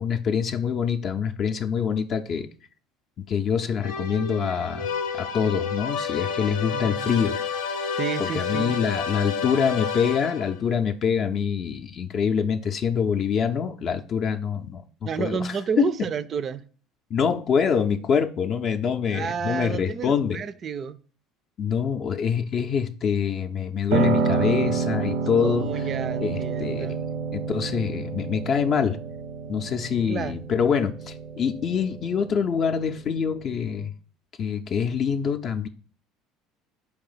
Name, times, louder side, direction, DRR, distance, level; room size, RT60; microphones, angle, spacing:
voice 1, 0.0-2.5 3.3-4.9 5.1-7.4 8.2-16.1 17.1-20.4 21.6-25.7 26.2-26.9 27.3-29.0 29.5-33.9 34.4-35.7, left 7 dB, 50° left, 0.4 m, -25 dB
sound 1, 3.8-10.7, left 6 dB, 90° left, 0.6 m, -30 dB
voice 2, 6.7-7.2 7.9-8.8 15.0-16.6 19.1-21.0 25.4-27.0 30.1-30.4, right 7 dB, 45° right, 0.3 m, -31 dB
Piano, 23.9-33.8, right 4 dB, 85° right, 0.7 m, -29 dB
4.3 x 2.9 x 3.9 m
supercardioid pair, 85°, 0 cm